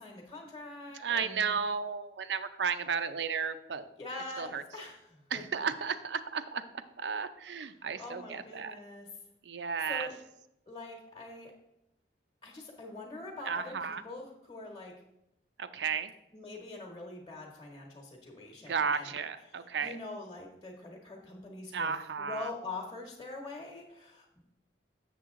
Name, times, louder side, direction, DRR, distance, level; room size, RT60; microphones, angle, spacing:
voice 1, 0.0-1.6 4.0-5.5 8.0-9.1 9.9-10.2 10.7-11.5 12.4-14.9 16.3-19.1 19.8-21.9 22.2-24.3, left 2 dB, 25° left, 0 dB, 1.1 m, -44 dB
voice 2, 1.0-3.9 4.4-4.6 5.3-8.7 9.4-10.1 13.5-14.0 15.6-16.1 18.7-20.0 21.7-22.5, right 6 dB, 80° right, 11 dB, 0.5 m, -33 dB
7.3 x 6.9 x 3.7 m, 0.85 s
head